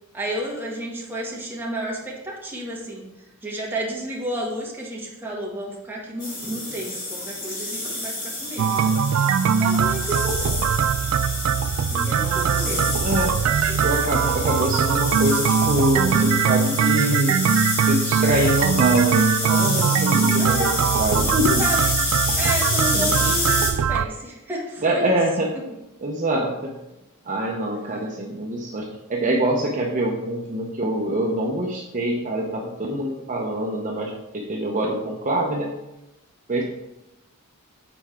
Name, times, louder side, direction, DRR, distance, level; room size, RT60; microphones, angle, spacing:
voice 1, 0.1-3.0 3.4-8.9 9.6-10.6 11.9-12.8 13.7-14.1 20.4-20.7 21.6-22.0 22.3-25.2, right 1 dB, 10° right, -4 dB, 1.6 m, -31 dB
sound 1, 6.2-23.7, left 2 dB, 40° left, 2.4 m, -28 dB
sound 2, 8.6-24.1, right 7 dB, 75° right, 0.3 m, -21 dB
voice 2, 12.2-17.4 17.8-21.6 22.3-22.4 22.9-23.1 24.8-25.5 26.0-26.8 27.2-35.7 36.5-36.6, right 1 dB, 35° right, -1 dB, 0.7 m, -25 dB
7.1 x 4.6 x 4.3 m, 0.94 s
head